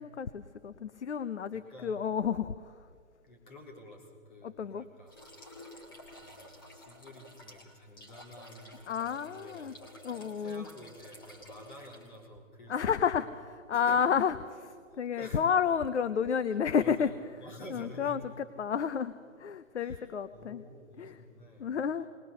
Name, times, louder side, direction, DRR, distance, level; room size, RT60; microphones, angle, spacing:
voice 1, 0.0-2.7 4.4-4.9 8.9-9.7 10.0-10.6 12.7-17.1 17.7-19.1 19.4-20.6 21.0-21.2 21.6-22.1, left 7 dB, 60° left, 14 dB, 0.7 m, -31 dB
voice 2, 1.5-2.1 3.2-5.1 5.9-6.0 6.2-9.8 10.2-13.1 13.7-14.0 15.2-15.5 16.5-18.2 19.8-21.7 22.0-22.1, equal, 40° left, -1 dB, 3.8 m, -50 dB
sound 1, 5.1-12.3, left 1 dB, 15° left, 1.4 m, -52 dB
20.5 x 19.5 x 6.8 m, 2.1 s
hypercardioid pair, 175°, 40 cm